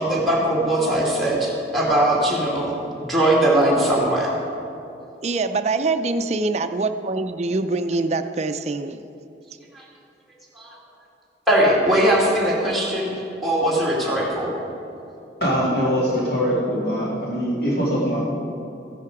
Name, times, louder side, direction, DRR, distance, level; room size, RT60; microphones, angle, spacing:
voice 1, 0.0-2.7 3.1-4.3 9.7-9.8 10.5-10.7 11.5-13.1 13.4-14.5, right 1 dB, ahead, -5 dB, 2.4 m, -20 dB
voice 2, 5.2-9.0, right 3 dB, 40° right, 9 dB, 0.4 m, -24 dB
voice 3, 15.4-18.2, equal, 60° left, -5 dB, 2.2 m, -22 dB
15.0 x 10.5 x 4.8 m, 2.7 s
head